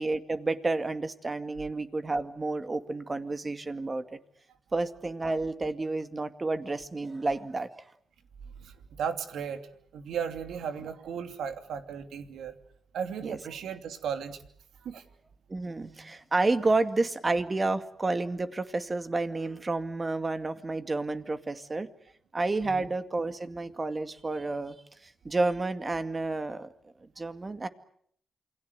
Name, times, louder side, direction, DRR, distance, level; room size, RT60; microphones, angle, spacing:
voice 1, 0.0-4.0 4.7-7.8 10.8-10.9 13.2-13.4 15.5-21.9 22.3-24.8 25.2-26.7 27.0-27.7, right 3 dB, 25° right, 9 dB, 2.2 m, -30 dB
voice 2, 8.9-9.6 9.9-12.5 12.9-14.4 14.8-15.0 22.6-22.9, right 7 dB, 90° right, 7 dB, 2.8 m, -35 dB
28.0 x 23.5 x 8.2 m, 0.66 s
cardioid pair, 90°, 0 cm